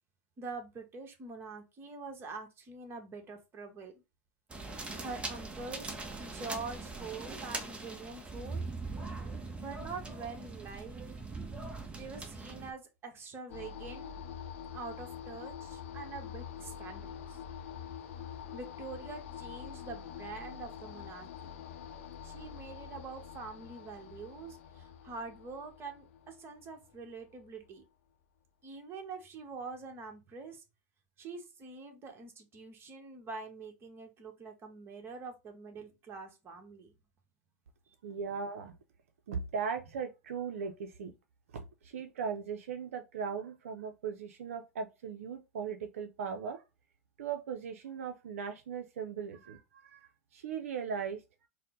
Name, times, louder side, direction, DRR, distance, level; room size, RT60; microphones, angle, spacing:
voice 1, 0.4-4.0 4.6-8.6 9.6-11.0 11.9-14.2 14.7-17.4 18.5-21.5 22.2-27.8 28.6-30.6 31.2-36.9 37.9-38.0, right 4 dB, 30° right, 1.2 m, -45 dB
sound 1, 4.5-12.7, right 3 dB, 15° right, 0.7 m, -41 dB
sound 2, 13.5-27.7, left 8 dB, 75° left, 0.6 m, -46 dB
voice 2, 38.0-38.7 39.3-41.1 41.5-46.6 47.2-51.2, right 6 dB, 80° right, 0.5 m, -38 dB
4.2 x 2.1 x 3.7 m
hypercardioid pair, 100°, 7 cm